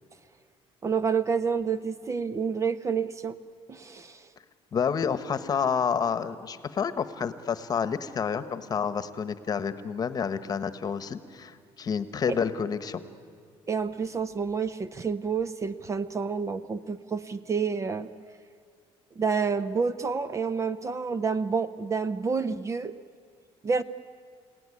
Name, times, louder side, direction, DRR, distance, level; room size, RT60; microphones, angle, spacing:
voice 1, 0.8-3.4 3.7-4.3 12.3-12.4 13.7-18.1 19.2-22.9 23.6-23.8, right 5 dB, 25° right, 13 dB, 0.7 m, -29 dB
voice 2, 4.7-13.0, left 6 dB, 35° left, 12 dB, 1.2 m, -29 dB
28.0 x 17.5 x 9.9 m, 2.2 s
cardioid pair, 130°, 11 cm